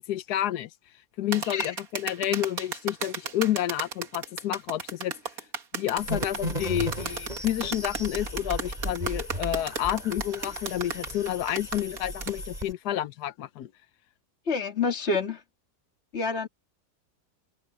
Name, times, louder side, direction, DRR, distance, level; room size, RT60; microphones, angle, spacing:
voice 1, 0.1-0.7 1.2-5.1 5.7-13.7, left 12 dB, 75° left, 1.3 m, -29 dB
sound 1, 1.3-12.4, right 5 dB, 60° right, 2.1 m, -34 dB
voice 2, 1.4-1.7 14.5-15.4 16.1-16.5, left 4 dB, 40° left, 2.3 m, -28 dB
sound 2, 6.0-12.7, equal, 25° right, 8.2 m, -35 dB
omnidirectional pair, 1.7 m